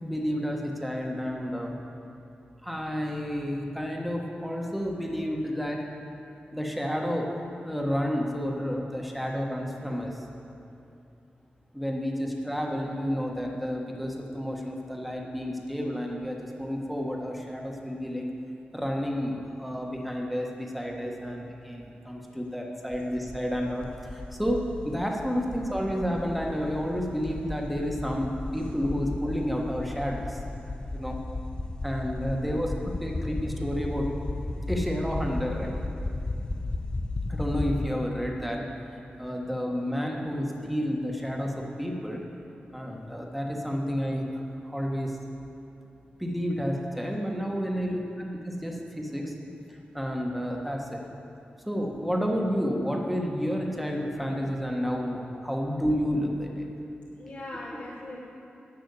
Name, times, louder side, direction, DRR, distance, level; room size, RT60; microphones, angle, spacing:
voice 1, 0.0-1.8 2.6-5.8 6.5-7.3 7.6-10.2 11.7-18.3 18.7-30.4 30.9-31.2 31.8-34.1 34.7-35.8 37.3-38.6 39.2-42.2 42.7-45.2 46.2-49.3 49.7-51.0 51.6-56.7, equal, ahead, 0 dB, 1.3 m, -30 dB
sound 1, 22.9-37.9, left 2 dB, 25° left, 0.4 m, -35 dB
voice 2, 57.1-58.2, left 1 dB, 45° left, -4 dB, 1.1 m, -41 dB
10.5 x 6.2 x 8.3 m, 2.7 s
wide cardioid pair, 110°, 3 cm